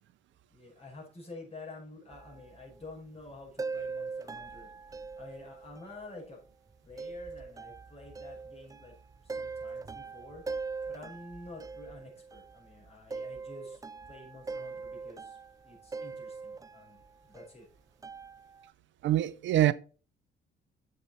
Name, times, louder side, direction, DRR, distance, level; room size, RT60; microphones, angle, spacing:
voice 1, 0.5-4.7 5.2-6.4 6.8-8.9 9.2-10.4 10.8-13.8 14.1-15.4 15.6-17.7, left 2 dB, 30° left, 5.4 m, -49 dB
sound 1, 2.1-2.9 3.6-6.1 6.9-12.6 12.9-17.1 17.3-17.5 18.0-18.7, right 4 dB, 15° right, 0.4 m, -41 dB
voice 2, 19.0-19.7, right 12 dB, 70° right, 0.6 m, -24 dB
7.7 x 6.6 x 4.3 m
cardioid pair, 90°, 20 cm